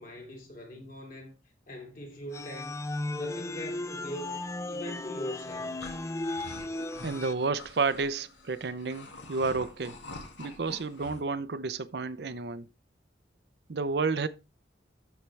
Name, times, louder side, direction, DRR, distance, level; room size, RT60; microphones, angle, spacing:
voice 1, 0.0-1.3 1.7-2.8 3.1-5.8, equal, 45° left, 2.4 m, -42 dB
sound 1, 2.3-7.3, left 2 dB, 15° left, 0.3 m, -35 dB
sound 2, 5.4-11.2, left 2 dB, 80° left, 1.9 m, -47 dB
voice 2, 7.0-10.0 10.4-12.7 13.7-14.3, right 4 dB, 60° right, 0.5 m, -31 dB
13.0 x 4.5 x 3.2 m
head